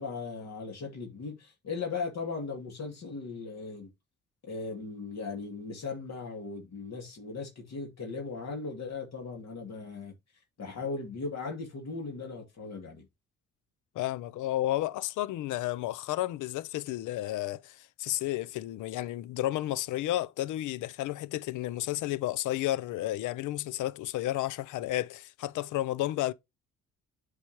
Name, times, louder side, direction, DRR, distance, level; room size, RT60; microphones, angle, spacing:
voice 1, 0.0-3.9 4.4-10.1 10.6-13.1, left 4 dB, 60° left, 2.5 m, -38 dB
voice 2, 14.0-26.3, left 15 dB, 80° left, 0.6 m, -32 dB
8.2 x 4.9 x 3.0 m
supercardioid pair, 65°, 30 cm